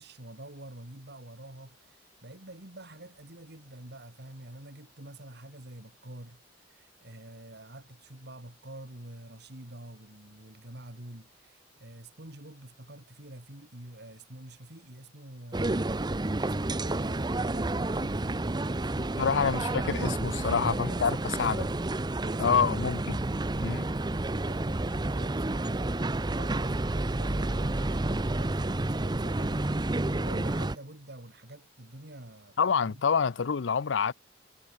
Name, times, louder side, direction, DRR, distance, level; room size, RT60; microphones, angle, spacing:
voice 1, 0.0-15.9 16.4-19.4 20.4-21.6 22.2-22.9 23.2-33.0, right 1 dB, 60° right, 3.2 m, -47 dB
sound 1, 15.5-30.8, right 2 dB, 25° right, 0.7 m, -30 dB
voice 2, 19.2-21.6 22.4-23.2 23.6-23.9 32.6-34.1, left 6 dB, 75° left, 0.5 m, -27 dB
head